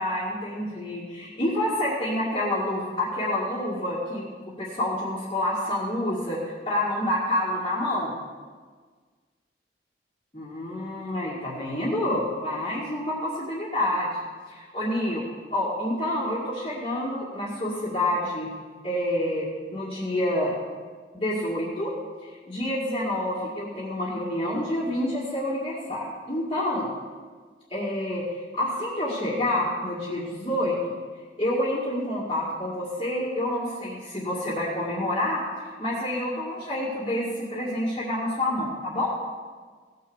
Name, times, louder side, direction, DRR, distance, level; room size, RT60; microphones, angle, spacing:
voice 1, 0.0-4.2 4.6-8.1 10.3-14.1 14.5-18.5 18.8-20.5 21.1-21.9 22.2-26.9 27.7-28.2 28.5-30.8 31.4-35.4 35.8-39.2, left 1 dB, 30° left, -7 dB, 1.9 m, -28 dB
16.5 x 6.6 x 7.1 m, 1.5 s
head